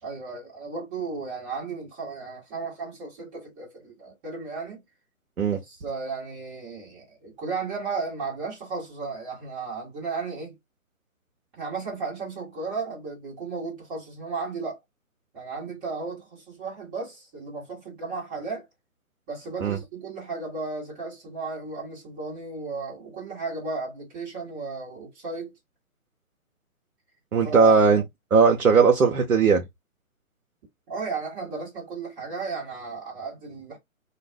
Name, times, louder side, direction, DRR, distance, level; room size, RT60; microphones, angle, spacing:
voice 1, 0.0-4.8 5.5-10.6 11.5-14.8 15.3-18.7 19.3-25.5 27.4-27.7 30.9-33.8, right 4 dB, 15° right, 1.1 m, -34 dB
voice 2, 27.3-28.0 28.3-29.6, right 5 dB, 75° right, 0.7 m, -18 dB
2.4 x 2.3 x 3.3 m
figure-of-eight pair, 135°, 43 cm